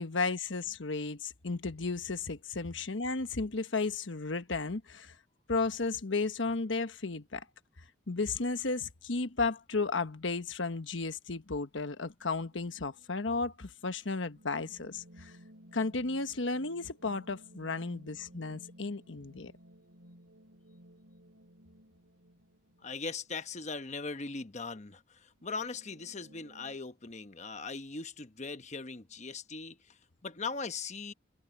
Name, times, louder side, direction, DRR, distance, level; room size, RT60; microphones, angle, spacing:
voice 1, 0.0-5.1 5.5-7.5 8.1-15.3 15.7-19.5, left 3 dB, 90° left, 1.2 m, -34 dB
sound 1, 12.5-24.0 24.3-24.4 25.4-26.8, equal, 90° right, 6.0 m, -58 dB
voice 2, 22.8-30.0 30.2-31.1, left 4 dB, 40° left, 1.0 m, -40 dB
head